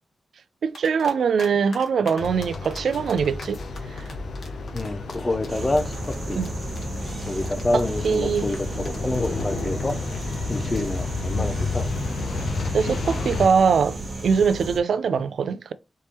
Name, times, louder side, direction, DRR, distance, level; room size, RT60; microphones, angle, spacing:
voice 1, 0.6-3.6 3.9-4.0 6.4-6.5 7.7-8.5 12.7-14.0 14.2-15.7, right 6 dB, 85° right, 0.3 m, -22 dB
sound 1, 0.7-1.5 1.7-11.2, left 3 dB, 70° left, 1.3 m, -43 dB
sound 2, 2.2-13.5, left 3 dB, 85° left, 0.8 m, -31 dB
voice 2, 4.7-6.4 7.2-10.0 10.5-11.9, left 2 dB, 25° left, 0.7 m, -27 dB
sound 3, 5.5-14.8, right 2 dB, 45° right, 1.1 m, -34 dB
4.2 x 3.5 x 3.1 m
wide cardioid pair, 125°, 0 cm